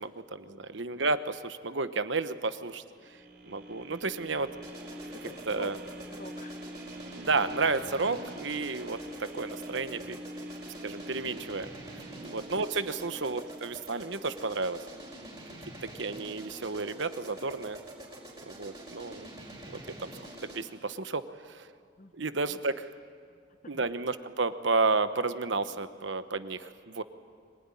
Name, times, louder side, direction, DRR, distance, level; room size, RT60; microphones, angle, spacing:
voice 1, 0.0-2.8 3.4-4.6 5.5-5.8 7.2-10.2 10.8-11.7 12.2-14.9 15.8-17.8 18.4-19.3 19.7-20.1 20.4-21.7 22.1-22.9 23.7-27.0, right 3 dB, 70° right, 11 dB, 1.1 m, -32 dB
sound 1, 3.0-15.1 15.5-15.6, equal, 55° right, 4.2 m, -45 dB
sound 2, 4.6-20.8, right 1 dB, 20° right, 5.2 m, -46 dB
voice 2, 5.1-5.7 6.1-6.6 12.1-12.4 12.9-13.1 15.5-15.8 22.0-22.6 23.3-23.4 23.6-23.8, left 2 dB, 40° left, 10 dB, 1.1 m, -48 dB
24.5 x 19.5 x 9.9 m, 2.1 s
head